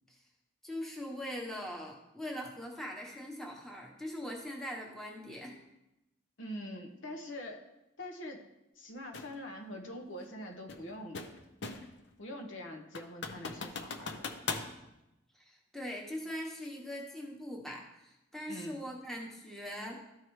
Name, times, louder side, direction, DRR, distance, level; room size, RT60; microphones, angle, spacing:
voice 1, 0.6-5.5 15.3-20.0, equal, ahead, -2 dB, 1.0 m, -41 dB
voice 2, 6.4-7.7 8.0-8.4 8.8-11.2 12.2-14.3 18.5-18.8, left 1 dB, 90° left, 3 dB, 1.1 m, -44 dB
sound 1, 9.1-9.3 10.7-12.0 12.4-12.5 12.9-14.7, left 4 dB, 60° left, 0.7 m, -39 dB
13.0 x 4.6 x 3.2 m, 0.91 s
head